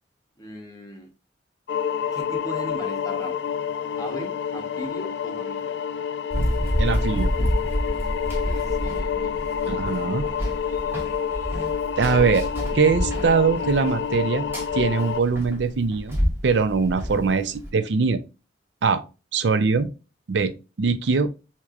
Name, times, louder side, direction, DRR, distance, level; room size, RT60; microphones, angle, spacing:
voice 1, 0.4-1.1 2.1-3.4 4.0-5.6 8.4-9.6, equal, 20° left, 1.0 m, -38 dB
sound 1, 1.7-15.2, left 7 dB, 65° left, 0.4 m, -28 dB
Run, 6.3-17.7, equal, 15° right, 1.2 m, -28 dB
voice 2, 6.8-7.3 9.7-10.3 12.0-12.5 12.7-14.5 14.7-16.2 16.4-18.2 18.8-19.0 19.3-19.9 20.3-21.3, right 5 dB, 70° right, 0.5 m, -22 dB
4.5 x 2.9 x 2.4 m
head